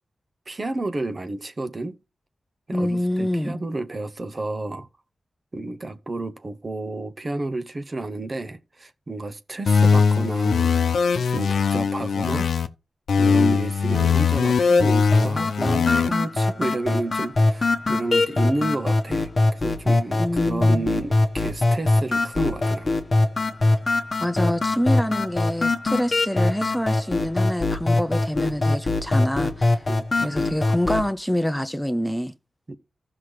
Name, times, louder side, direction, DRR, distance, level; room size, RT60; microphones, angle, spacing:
voice 1, 0.5-2.0 2.7-4.9 5.5-10.8 11.3-12.5 13.2-23.0 29.9-30.4 32.7-32.8, right 2 dB, 40° right, 0.9 m, -31 dB
voice 2, 2.7-3.6 20.2-20.9 24.2-29.8 30.2-32.3, equal, 5° left, 0.6 m, -26 dB
sound 1, 9.7-12.7 13.1-16.1, left 5 dB, 85° left, 0.6 m, -20 dB
sound 2, 15.1-31.1, left 2 dB, 40° left, 1.0 m, -22 dB
14.5 x 5.9 x 3.2 m
cardioid pair, 75°, 0 cm